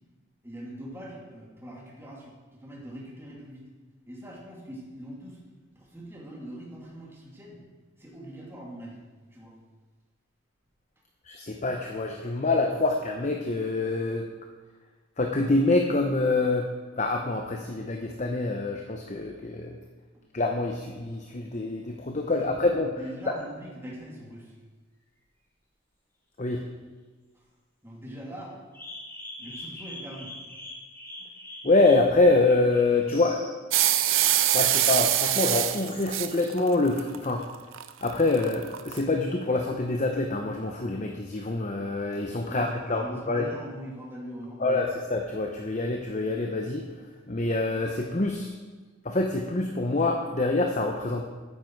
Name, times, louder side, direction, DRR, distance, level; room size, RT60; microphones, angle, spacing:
voice 1, 0.4-3.6 4.1-5.4 5.8-7.6 8.0-9.0 9.3-9.5 20.1-20.2 22.2-22.6 22.9-24.5 27.8-28.5 29.4-30.3 42.4-45.0, equal, 10° right, -3 dB, 2.6 m, -42 dB
voice 2, 11.3-14.3 15.2-16.7 17.0-19.8 20.3-22.9 23.3-23.4 26.4-26.6 31.6-33.4 34.5-37.5 38.0-43.5 44.6-46.8 47.3-48.5 49.0-51.2, left 2 dB, 35° left, 3 dB, 0.8 m, -26 dB
sound 1, 23.4-23.5 28.7-33.5 34.2-34.7 35.4-36.5 37.3-37.4, left 1 dB, 10° left, 2.8 m, -44 dB
sound 2, 33.7-39.0, right 12 dB, 70° right, 0.7 m, -24 dB
13.0 x 9.6 x 4.7 m, 1.3 s
head